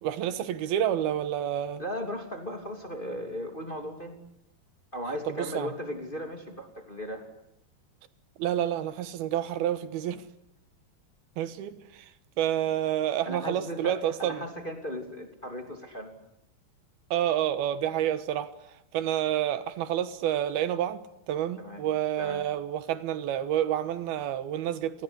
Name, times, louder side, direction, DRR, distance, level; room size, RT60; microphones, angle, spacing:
voice 1, 0.0-1.8 5.3-5.7 8.4-10.2 11.4-12.1 12.4-14.5 17.1-18.5 18.9-25.0, right 11 dB, 80° right, 3.1 m, -29 dB
voice 2, 1.8-4.2 4.9-7.3 13.2-16.1 21.6-21.8 22.2-22.4, equal, 15° left, 2.5 m, -36 dB
29.5 x 20.0 x 9.9 m
omnidirectional pair, 4.4 m